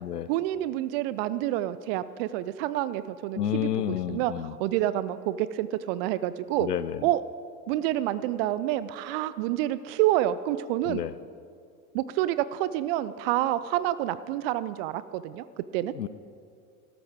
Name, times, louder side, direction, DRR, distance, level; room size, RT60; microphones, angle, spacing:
voice 1, 0.3-3.7 4.1-6.7 7.0-7.2 7.7-11.0 11.9-15.4 15.7-15.9, right 13 dB, 40° right, 15 dB, 0.5 m, -28 dB
voice 2, 3.4-4.5 6.6-7.0 10.9-11.1 16.0-16.1, left 10 dB, 85° left, 16 dB, 0.5 m, -30 dB
13.0 x 12.5 x 3.6 m, 2.3 s
figure-of-eight pair, 80°, 46 cm